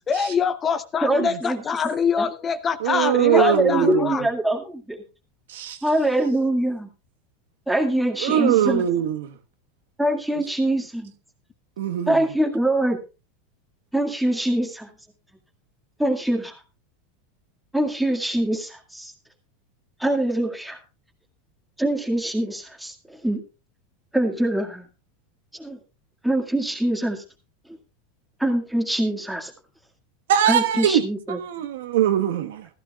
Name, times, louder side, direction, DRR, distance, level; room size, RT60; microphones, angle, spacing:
voice 1, 0.1-4.2, left 6 dB, 20° left, 0.7 m, -24 dB
voice 2, 1.0-1.6 2.2-2.3 3.3-5.0 5.8-6.9 7.7-8.8 10.0-11.1 12.1-13.0 13.9-14.9 16.0-16.5 17.7-19.1 20.0-20.8 21.8-23.4 24.1-24.9 25.6-25.8 26.2-27.2 28.4-29.5 30.5-31.4, right 1 dB, ahead, 2.0 m, -24 dB
voice 3, 2.8-4.1 5.5-5.8 8.2-9.3 11.8-12.2 30.3-31.0 31.3-32.7, right 10 dB, 90° right, 1.3 m, -22 dB
15.5 x 14.5 x 2.4 m
supercardioid pair, 145°, 0 cm